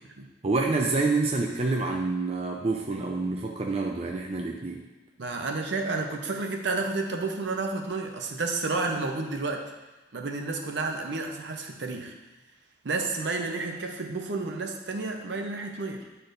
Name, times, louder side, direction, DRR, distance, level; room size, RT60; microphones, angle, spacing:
voice 1, 0.4-4.8, right 3 dB, 30° right, 1 dB, 0.4 m, -27 dB
voice 2, 5.2-9.7 10.1-12.1 12.8-16.1, right 3 dB, 70° right, 3 dB, 0.7 m, -31 dB
9.5 x 4.4 x 2.6 m, 1.1 s
head